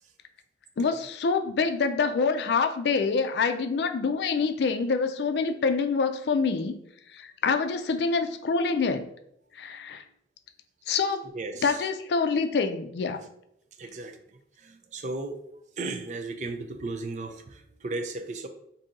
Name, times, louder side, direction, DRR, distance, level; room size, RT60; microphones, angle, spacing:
voice 1, 0.8-6.8 7.1-9.1 9.6-10.0 10.9-11.2 11.6-13.2, left 4 dB, 75° left, 8 dB, 0.4 m, -26 dB
voice 2, 11.3-11.8 13.8-14.2 14.6-15.4 15.8-18.5, right 3 dB, 45° right, 7 dB, 0.4 m, -35 dB
4.0 x 2.7 x 3.7 m, 0.75 s
head